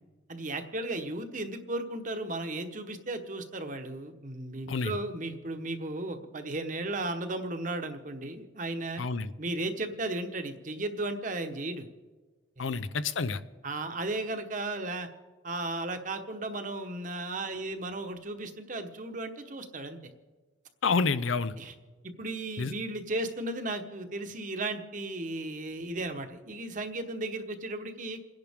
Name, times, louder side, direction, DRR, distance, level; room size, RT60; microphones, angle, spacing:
voice 1, 0.3-9.0 9.4-11.9 12.6-12.8 13.6-15.1 15.4-20.1 21.6-21.7 22.0-28.2, right 2 dB, 40° right, 7 dB, 1.1 m, -35 dB
voice 2, 9.0-9.3 12.6-13.4 20.8-21.6 22.6-22.7, left 4 dB, 90° left, 13 dB, 0.7 m, -28 dB
28.5 x 10.5 x 3.6 m, 1.3 s
head